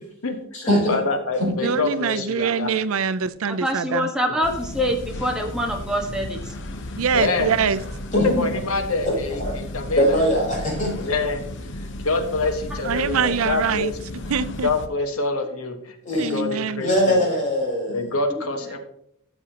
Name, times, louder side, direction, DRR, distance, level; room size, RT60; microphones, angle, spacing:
voice 1, 0.0-2.7 7.1-7.6 8.2-10.0 11.1-11.4 11.7-14.0 14.6-17.3 17.9-18.8, left 3 dB, 85° left, 1.4 m, -26 dB
voice 2, 0.5-0.9 1.4-1.5 8.1-8.5 9.0-9.5 10.0-11.1 16.0-16.4 16.8-18.1, equal, 35° left, 4.2 m, -21 dB
voice 3, 1.6-4.1 7.0-7.8 12.8-13.9 14.3-14.7 16.2-16.8, right 6 dB, 75° right, 0.5 m, -24 dB
voice 4, 3.4-6.6 12.7-12.8 18.3-18.4, equal, 5° right, 1.4 m, -25 dB
sound 1, 4.4-14.9, left 1 dB, 60° left, 1.0 m, -34 dB
13.0 x 7.3 x 2.9 m
head